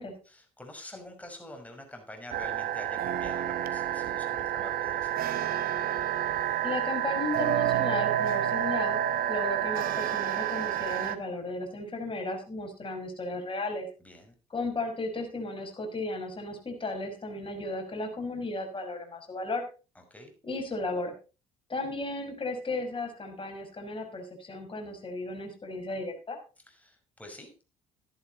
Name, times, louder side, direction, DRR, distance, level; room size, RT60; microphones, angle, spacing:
voice 1, 0.3-5.6 14.0-14.3 20.1-20.3 26.7-27.6, left 1 dB, 10° left, 4 dB, 5.4 m, -46 dB
sound 1, 2.3-11.2, right 11 dB, 55° right, 1.1 m, -29 dB
voice 2, 6.6-9.0 9.3-13.9 14.5-19.6 20.4-21.1 21.7-26.4, left 2 dB, 30° left, 3 dB, 5.5 m, -34 dB
13.0 x 11.0 x 4.2 m, 0.33 s
hypercardioid pair, 55°, 18 cm